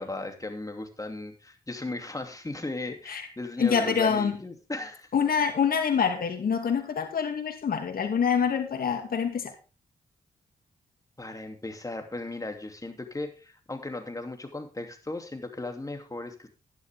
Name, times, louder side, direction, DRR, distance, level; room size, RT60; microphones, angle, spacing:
voice 1, 0.0-5.1 11.2-16.5, left 2 dB, 20° left, 5 dB, 2.8 m, -36 dB
voice 2, 3.6-4.4 5.1-9.5, left 6 dB, 70° left, 6 dB, 2.4 m, -26 dB
11.5 x 10.5 x 3.6 m, 0.33 s
supercardioid pair, 55°, 16 cm